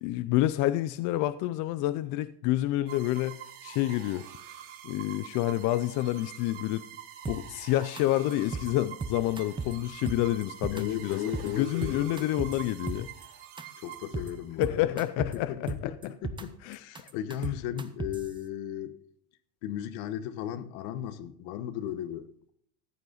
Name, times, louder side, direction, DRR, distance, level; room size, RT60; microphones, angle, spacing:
voice 1, 0.0-3.4 3.6-4.2 4.8-6.8 7.3-11.2 11.6-13.1 14.6-15.5 16.7-16.8, left 15 dB, 45° left, 0.5 m, -28 dB
sound 1, 2.9-14.7, right 10 dB, 80° right, 4.3 m, -46 dB
sound 2, 7.2-7.6 8.0-8.1 8.3-8.7 9.0-9.7 10.1-10.8 11.1-11.5 11.8-13.2 13.6-13.7 13.9-14.3 14.6-15.3 15.7-16.4 16.7-18.3, right 3 dB, 10° right, 0.7 m, -35 dB
voice 2, 10.7-12.3 13.8-19.0 19.6-22.5, left 10 dB, 70° left, 1.2 m, -36 dB
14.5 x 9.5 x 3.9 m
cardioid pair, 150°, 44 cm